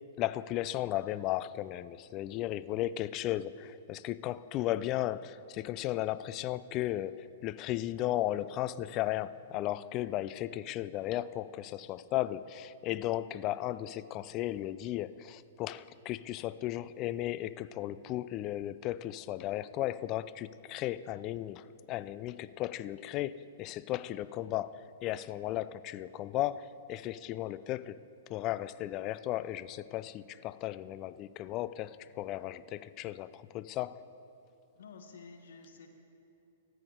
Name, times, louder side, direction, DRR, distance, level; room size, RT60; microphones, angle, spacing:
voice 1, 0.2-28.0 28.3-34.1, left 14 dB, 35° left, 16 dB, 0.3 m, -35 dB
voice 2, 34.7-35.9, left 5 dB, 75° left, 5 dB, 1.4 m, -51 dB
14.0 x 8.5 x 4.4 m, 2.8 s
hypercardioid pair, 125°, 0 cm